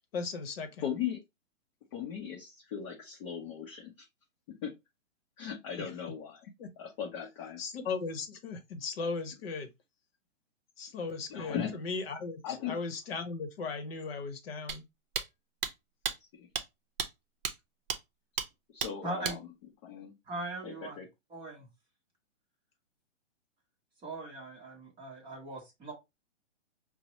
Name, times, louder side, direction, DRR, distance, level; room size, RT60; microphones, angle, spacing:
voice 1, 0.1-0.7 5.8-5.9 6.6-6.7 7.6-9.7 10.8-14.8, left 4 dB, 50° left, 0.8 m, -37 dB
voice 2, 0.8-1.2 1.9-4.1 4.6-4.7 5.4-6.4 6.8-7.6 11.3-11.7 12.4-12.8 16.3-16.5 18.7-19.4 19.8-20.1 20.6-21.1, left 8 dB, 25° left, 0.6 m, -38 dB
sound 1, 14.7-14.8 15.1-15.3 15.6-15.7 16.0-16.1 16.5-16.6 17.0-17.1 17.4-17.5 17.9-18.0 18.4-18.5 18.8-18.9 19.2-19.4, right 6 dB, 50° right, 0.6 m, -32 dB
voice 3, 19.0-19.4 20.3-21.0 21.3-21.7 24.0-25.9, right 2 dB, 15° right, 0.8 m, -40 dB
5.0 x 2.0 x 2.9 m
hypercardioid pair, 145°, 38 cm